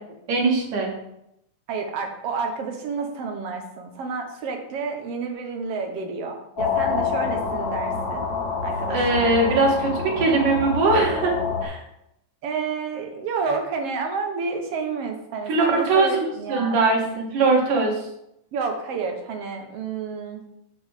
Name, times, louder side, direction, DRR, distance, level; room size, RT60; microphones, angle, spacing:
voice 1, 0.3-0.9 8.9-11.3 11.6-11.8 15.5-18.1, right 3 dB, 80° right, -1 dB, 3.3 m, -21 dB
voice 2, 1.7-8.3 8.6-9.3 12.4-16.8 18.5-20.4, right 4 dB, 60° right, 4 dB, 1.7 m, -30 dB
sound 1, 6.6-11.6, left 5 dB, 45° left, 1.8 m, -27 dB
6.9 x 5.3 x 6.5 m, 0.81 s
omnidirectional pair, 3.6 m